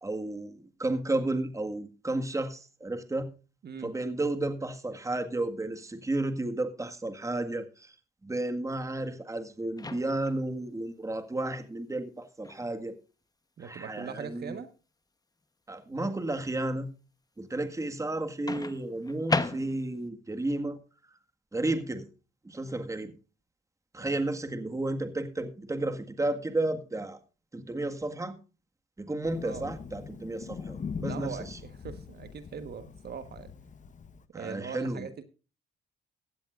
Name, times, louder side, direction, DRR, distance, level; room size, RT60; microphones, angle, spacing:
voice 1, 0.0-3.3 3.8-8.0 8.2-13.0 13.6-14.6 15.7-16.9 17.4-20.8 21.0-21.2 21.5-22.1 22.4-23.1 23.9-27.2 27.5-28.4 29.0-31.6 34.3-35.2, right 2 dB, 15° right, 7 dB, 1.7 m, -32 dB
Microwave oven, 9.8-10.5 12.4-12.7 18.5-20.1, left 3 dB, 20° left, 1.1 m, -33 dB
voice 2, 13.6-14.7 24.0-24.2 29.4-29.7 31.0-33.5 34.3-35.2, right 6 dB, 55° right, 10 dB, 1.4 m, -41 dB
Thunder, 29.2-34.2, left 5 dB, 40° left, 1.1 m, -41 dB
16.5 x 12.5 x 2.5 m, 0.33 s
cardioid pair, 90°, 20 cm